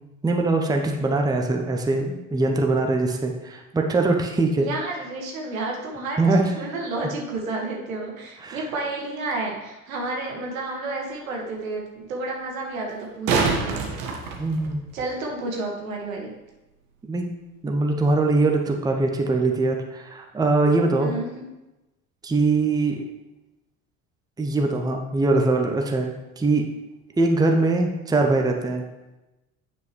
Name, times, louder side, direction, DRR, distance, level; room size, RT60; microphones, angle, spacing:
voice 1, 0.2-4.7 6.2-6.5 8.4-8.6 14.4-14.8 17.0-17.3 17.6-21.1 22.2-23.0 24.4-26.7 27.2-28.8, right 2 dB, 10° right, 3 dB, 0.7 m, -22 dB
voice 2, 4.6-13.8 14.9-16.3 21.0-21.4, right 2 dB, 75° right, 0 dB, 1.4 m, -31 dB
sound 1, 10.0-10.1 12.9-15.0 17.9-18.0, right 4 dB, 50° right, 1.3 m, -26 dB
9.2 x 5.2 x 3.1 m, 1.0 s
figure-of-eight pair, 60°, 42 cm